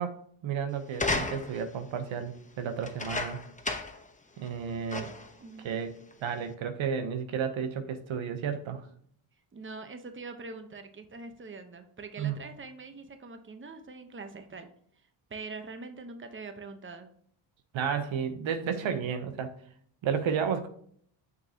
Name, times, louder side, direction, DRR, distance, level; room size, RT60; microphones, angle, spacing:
voice 1, 0.0-3.4 4.4-5.1 5.6-5.9 6.2-8.9 12.2-12.3 17.7-19.5 20.0-20.7, right 7 dB, 70° right, 8 dB, 1.0 m, -32 dB
sound 1, 0.9-1.7 2.8-4.1 4.4-4.5 4.9-5.3 6.1-6.2, left 3 dB, 15° left, 1.0 m, -33 dB
voice 2, 5.4-5.7 9.5-14.7 15.0-17.1, right 4 dB, 25° right, 7 dB, 1.0 m, -43 dB
6.5 x 5.9 x 2.9 m, 0.62 s
cardioid pair, 75°, 49 cm